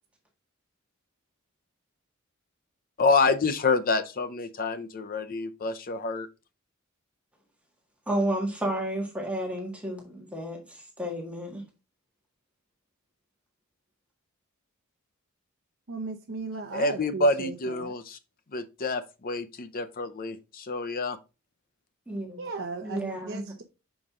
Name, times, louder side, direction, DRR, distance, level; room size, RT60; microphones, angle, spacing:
voice 1, 3.0-6.3 16.7-18.2 18.5-21.2, left 3 dB, 45° left, 0.6 m, -27 dB
voice 2, 8.1-11.6 22.1-22.4 22.8-23.5, right 1 dB, 5° right, 1.7 m, -31 dB
voice 3, 15.9-17.9 22.4-23.6, right 3 dB, 60° right, 0.7 m, -36 dB
6.0 x 5.1 x 3.6 m
head